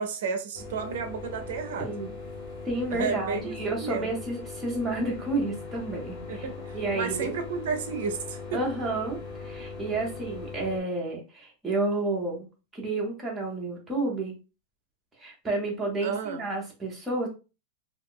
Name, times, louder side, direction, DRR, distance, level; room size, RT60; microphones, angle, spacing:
voice 1, 0.0-1.9 2.9-4.1 6.3-8.6 16.0-16.4, right 5 dB, 65° right, 0.5 m, -32 dB
sound 1, 0.5-10.8, left 4 dB, 35° left, 0.8 m, -40 dB
voice 2, 1.8-2.1 2.7-6.5 6.7-7.3 8.5-12.5 12.7-14.3 15.2-17.3, right 2 dB, 5° right, 0.6 m, -30 dB
2.3 x 2.0 x 3.6 m
supercardioid pair, 180°, 0 cm